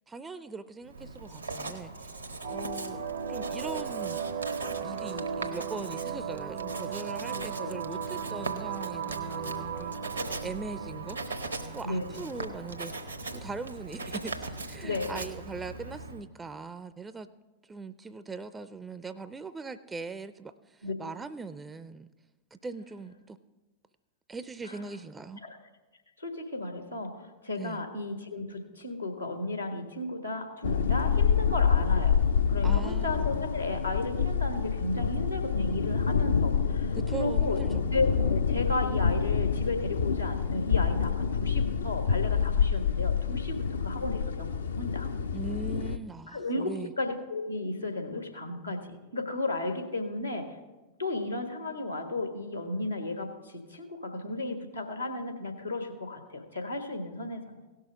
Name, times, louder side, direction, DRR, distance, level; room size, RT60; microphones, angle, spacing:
voice 1, 0.1-2.1 2.5-3.0 3.3-4.2 4.8-10.0 10.4-11.2 11.7-12.9 13.3-17.3 17.6-22.1 22.5-23.4 24.3-25.4 27.6-27.8 32.6-33.3 37.0-38.0 45.3-46.9, right 4 dB, 15° right, 13 dB, 0.4 m, -40 dB
Writing, 0.9-16.2, right 3 dB, 85° right, 1.0 m, -40 dB
sound 1, 2.4-13.4, right 6 dB, 65° right, 0.6 m, -37 dB
voice 2, 7.3-7.8 11.8-12.2 14.8-15.2 20.8-20.9 24.7-24.8 25.4-25.6 26.2-32.2 32.5-37.6 37.9-45.1 46.3-46.7 47.0-50.6 51.0-57.5, left 2 dB, 85° left, 4 dB, 1.4 m, -34 dB
sound 2, 30.6-46.0, left 6 dB, 70° left, 0.5 m, -27 dB
17.0 x 6.4 x 5.0 m, 1.2 s
figure-of-eight pair, 90°, 0 cm